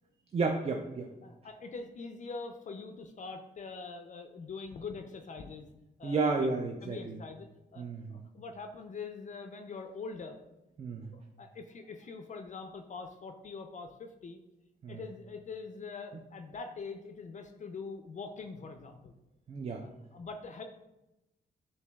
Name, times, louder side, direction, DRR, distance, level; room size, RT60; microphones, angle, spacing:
voice 1, 0.3-1.1 6.0-7.2 7.8-8.2 10.8-11.1 14.8-15.0 19.5-19.9, right 4 dB, 35° right, 4 dB, 0.4 m, -32 dB
voice 2, 1.2-5.7 6.0-6.5 6.8-7.5 7.7-10.4 11.1-14.4 14.9-19.1 19.8-20.6, left 4 dB, 45° left, 6 dB, 0.4 m, -43 dB
6.6 x 2.7 x 2.2 m, 0.97 s
cardioid pair, 80°, 18 cm